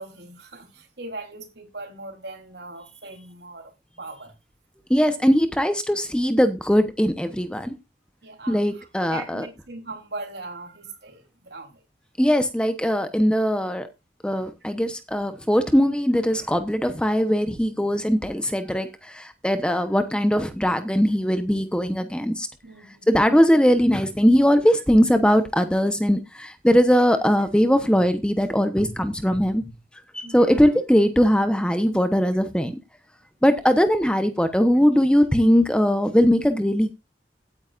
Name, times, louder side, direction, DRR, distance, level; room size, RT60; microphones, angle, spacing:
voice 1, 0.0-3.7 4.0-4.3 8.2-11.8 22.6-23.4 30.2-30.7 33.5-33.7, right 2 dB, 70° right, 3.7 m, -40 dB
voice 2, 4.9-7.7 8.5-9.5 12.2-13.9 14.2-22.5 23.1-29.6 30.1-32.8 33.4-37.0, equal, 5° left, 1.0 m, -20 dB
16.0 x 9.5 x 2.5 m
head